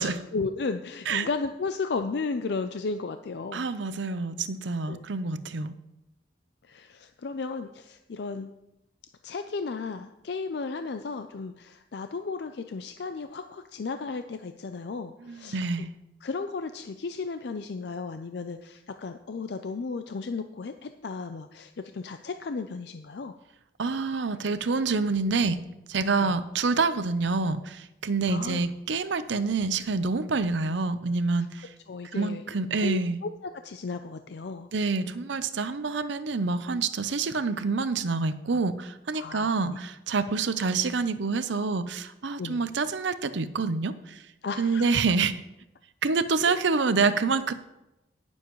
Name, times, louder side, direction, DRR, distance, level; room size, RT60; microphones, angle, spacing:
voice 1, 0.0-3.7 4.9-5.0 6.7-8.5 9.2-15.9 16.2-23.3 26.2-26.3 28.3-28.6 31.9-32.5 32.7-33.3 33.6-34.7 39.1-39.8 42.4-42.7 44.4-45.0 46.5-46.6, left 4 dB, 60° left, 8 dB, 0.4 m, -34 dB
voice 2, 3.5-5.7 15.2-15.9 23.8-25.6 25.9-31.7 32.1-33.2 34.7-44.2 44.6-45.3 46.0-47.5, right 4 dB, 75° right, 12 dB, 0.6 m, -27 dB
18.5 x 7.2 x 3.1 m, 0.92 s
head